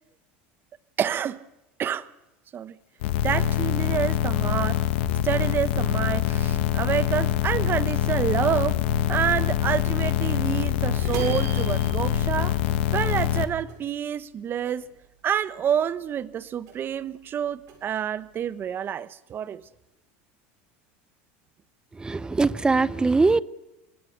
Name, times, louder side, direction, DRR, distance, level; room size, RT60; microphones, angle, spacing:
voice 1, 1.0-1.4 1.8-2.1 2.5-2.8 3.2-4.8 5.2-8.8 9.1-12.6 12.9-14.8 15.2-19.6, right 9 dB, 35° right, 1.2 m, -28 dB
sound 1, 3.0-13.4, left 11 dB, 80° left, 1.9 m, -24 dB
sound 2, 11.0-13.4 13.7-15.4 15.7-17.1 17.4-18.6, right 8 dB, 60° right, 7.3 m, -40 dB
voice 2, 22.0-23.4, right 3 dB, 15° right, 0.7 m, -21 dB
25.0 x 20.0 x 6.7 m
supercardioid pair, 115°, 6 cm